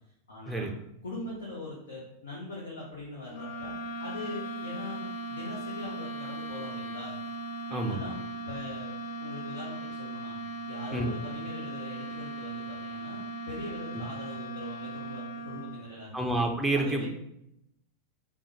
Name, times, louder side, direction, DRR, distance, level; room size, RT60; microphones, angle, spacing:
voice 1, 0.3-0.7 1.0-7.1 7.7-8.9 9.2-10.4 10.7-16.2 16.7-17.1, left 2 dB, 65° left, -5 dB, 0.9 m, -41 dB
sound 1, 3.3-16.0, right 2 dB, 45° left, 0.4 m, -38 dB
voice 2, 7.7-8.0 10.9-11.1 16.1-17.0, right 2 dB, 5° right, 2 dB, 0.6 m, -28 dB
5.3 x 2.3 x 3.1 m, 0.80 s
figure-of-eight pair, 90°, 0 cm